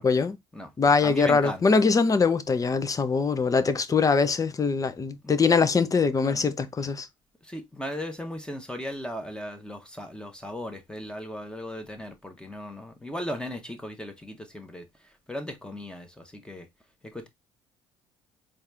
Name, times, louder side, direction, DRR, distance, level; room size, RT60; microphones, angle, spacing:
voice 1, 0.0-0.4 0.8-7.1, left 4 dB, 30° left, 0.6 m, -22 dB
voice 2, 1.0-1.7 5.2-5.3 6.2-6.4 7.4-14.8 15.3-16.7 17.1-17.3, equal, 5° left, 1.1 m, -37 dB
4.1 x 2.5 x 3.4 m
hypercardioid pair, 65°, 12 cm